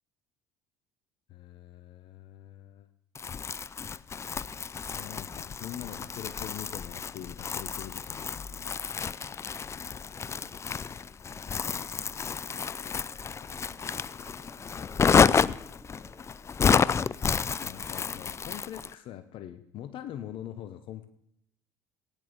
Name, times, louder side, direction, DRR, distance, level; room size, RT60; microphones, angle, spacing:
voice 1, 1.3-2.9 5.0-8.7 17.6-21.1, left 11 dB, 60° left, 10 dB, 1.1 m, -43 dB
Crumpling crinkling, 3.1-18.9, left 6 dB, 25° left, 0.5 m, -30 dB
voice 2, 10.2-11.0 11.3-11.4 13.5-17.1, equal, ahead, 4 dB, 3.4 m, -57 dB
15.5 x 10.5 x 7.0 m, 0.74 s
hypercardioid pair, 70°, 10 cm